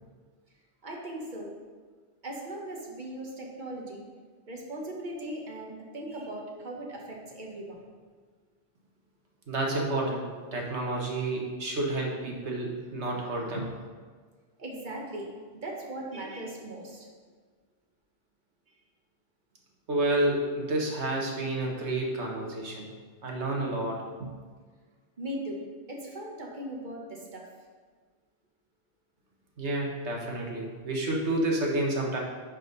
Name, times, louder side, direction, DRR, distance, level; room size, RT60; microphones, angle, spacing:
voice 1, 0.8-1.5 2.2-4.0 4.5-7.8 14.6-17.1 25.2-25.6 25.9-27.4, right 1 dB, 40° right, -1 dB, 1.4 m, -38 dB
voice 2, 9.5-10.3 10.5-13.8 19.9-22.9 23.2-24.3 29.6-32.2, right 2 dB, 65° right, -1 dB, 1.6 m, -30 dB
10.5 x 4.4 x 3.9 m, 1.5 s
omnidirectional pair, 1.2 m